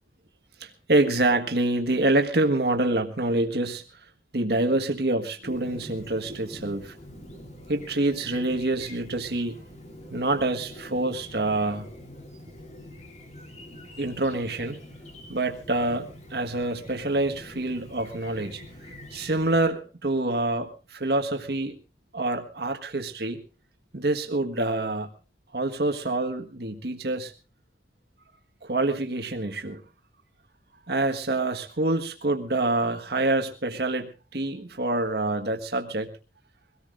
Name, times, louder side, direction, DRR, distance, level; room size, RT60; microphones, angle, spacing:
voice 1, 0.6-3.8 4.3-6.9 7.7-9.6 10.1-11.9 14.0-14.8 15.3-18.7 19.1-21.7 22.1-23.4 23.9-25.1 25.5-27.3 28.6-29.8 30.9-36.1, right 2 dB, 65° right, 5 dB, 1.6 m, -26 dB
Chirp tweet, 5.4-19.7, left 1 dB, 40° left, 3.4 m, -45 dB
23.5 x 18.0 x 2.5 m, 0.33 s
head